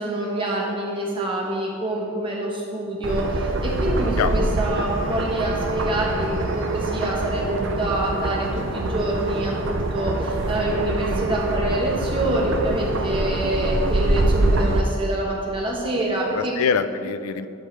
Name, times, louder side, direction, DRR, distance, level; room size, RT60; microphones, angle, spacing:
voice 1, 0.0-16.5, right 1 dB, 25° right, -3 dB, 1.1 m, -26 dB
sound 1, 3.0-14.8, right 2 dB, 55° right, 0.5 m, -25 dB
voice 2, 4.2-4.7 16.2-17.5, left 6 dB, 80° left, 11 dB, 0.4 m, -25 dB
11.0 x 5.3 x 3.3 m, 2.6 s
head